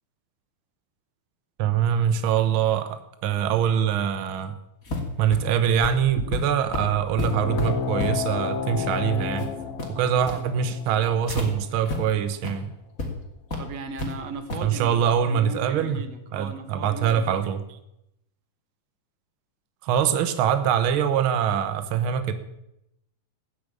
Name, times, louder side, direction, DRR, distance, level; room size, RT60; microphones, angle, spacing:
voice 1, 1.6-4.5 5.2-9.5 9.9-12.7 14.6-16.0 16.3-17.8 19.8-22.3, right 8 dB, 80° right, 10 dB, 1.1 m, -24 dB
sound 1, 4.8-11.5 11.9-12.0 12.3-12.5 13.0-13.1 13.5-14.1 14.5-14.7, left 2 dB, 25° left, 2.8 m, -32 dB
sound 2, 7.2-12.3, left 7 dB, 85° left, 3.2 m, -31 dB
voice 2, 13.6-17.3, right 4 dB, 55° right, 9 dB, 2.3 m, -37 dB
16.0 x 10.5 x 8.7 m, 0.83 s
omnidirectional pair, 4.0 m